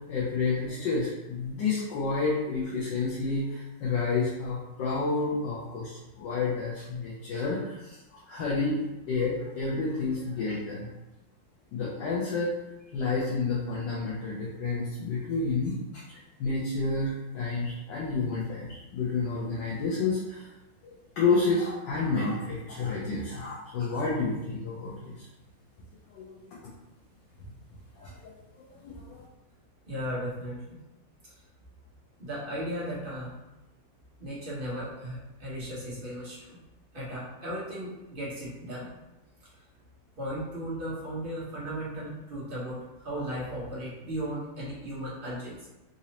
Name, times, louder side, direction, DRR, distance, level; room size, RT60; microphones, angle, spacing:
voice 1, 0.0-8.8 9.1-10.9 11.7-12.5 12.9-16.0 16.4-20.5 21.2-25.2 26.1-26.6 28.0-28.1 28.5-29.2, left 3 dB, 70° left, -6 dB, 1.3 m, -30 dB
voice 2, 29.9-30.8 31.2-31.4 32.2-33.4 34.2-36.6 36.9-38.9 39.4-39.6 40.2-45.7, equal, 35° right, -8 dB, 1.0 m, -36 dB
4.1 x 2.6 x 2.9 m, 1.0 s
omnidirectional pair, 2.2 m